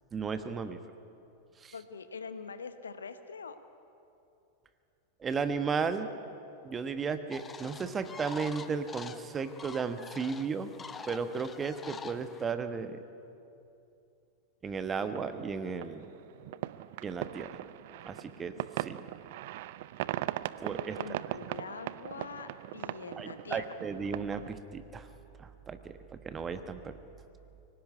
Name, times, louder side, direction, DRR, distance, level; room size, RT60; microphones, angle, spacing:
voice 1, 0.1-0.8 1.6-1.7 5.2-6.1 6.6-10.7 11.1-13.0 14.6-16.0 17.0-17.7 18.0-19.0 20.6-21.0 23.2-25.1 25.4-25.9 26.2-26.8, right 5 dB, 20° right, 10 dB, 1.2 m, -34 dB
voice 2, 1.7-3.6 20.9-23.8, left 5 dB, 70° left, 10 dB, 1.2 m, -44 dB
sound 1, 7.3-12.4, left 5 dB, 20° left, 0.9 m, -46 dB
sound 2, 15.0-24.5, right 15 dB, 50° right, 0.5 m, -40 dB
23.5 x 18.0 x 9.6 m, 2.8 s
figure-of-eight pair, 90°, 0 cm